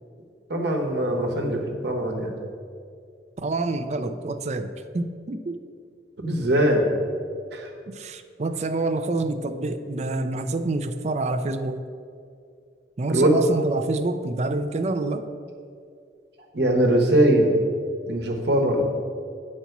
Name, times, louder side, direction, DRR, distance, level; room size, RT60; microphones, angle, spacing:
voice 1, 0.5-2.3 6.2-6.8 7.5-7.7 13.1-13.3 16.5-17.5 18.1-18.8, right 1 dB, 70° right, 2 dB, 1.1 m, -21 dB
voice 2, 3.4-5.6 7.9-11.8 13.0-15.3, right 2 dB, 40° right, 9 dB, 0.4 m, -27 dB
9.3 x 4.3 x 5.8 m, 2.3 s
head